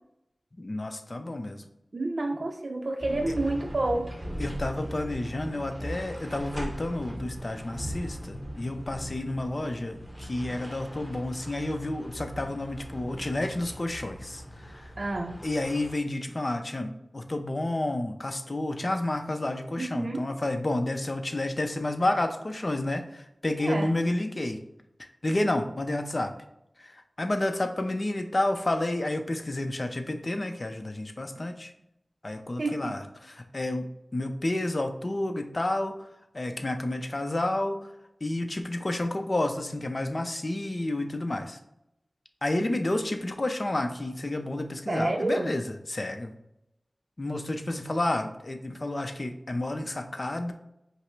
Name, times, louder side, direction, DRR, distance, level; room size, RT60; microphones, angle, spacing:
voice 1, 0.6-1.6 4.4-14.9 15.4-24.6 25.2-26.3 26.8-31.7 32.2-33.8 34.1-36.1 36.3-37.9 38.2-41.6 42.4-45.6 45.9-46.3 47.2-50.5, left 1 dB, 45° left, 6 dB, 0.6 m, -30 dB
voice 2, 1.9-4.1 15.0-15.4 19.8-20.3 23.6-23.9 32.6-32.9 44.9-45.5, right 2 dB, 70° right, 3 dB, 0.5 m, -29 dB
sound 1, 3.0-16.0, equal, 10° right, 0.9 m, -39 dB
5.3 x 2.0 x 4.6 m, 0.82 s
wide cardioid pair, 60°, 0 cm